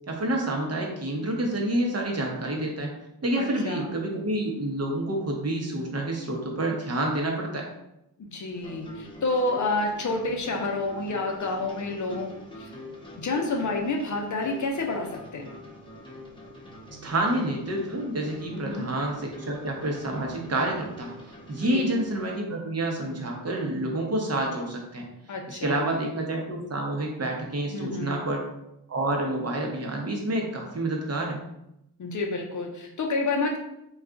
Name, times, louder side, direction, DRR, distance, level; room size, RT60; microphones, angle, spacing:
voice 1, 0.1-7.7 17.0-25.1 25.5-28.4 28.9-31.4, right 1 dB, 40° right, 0 dB, 0.8 m, -28 dB
voice 2, 3.4-3.9 8.2-12.3 12.6-12.7 13.2-15.5 18.5-18.9 21.6-21.9 25.3-25.9 27.6-28.2 32.0-33.6, left 2 dB, 50° left, 2 dB, 0.6 m, -29 dB
sound 1, 8.5-22.3, left 1 dB, 15° left, 0.9 m, -44 dB
2.3 x 2.3 x 3.7 m, 0.84 s
cardioid pair, 60°, 39 cm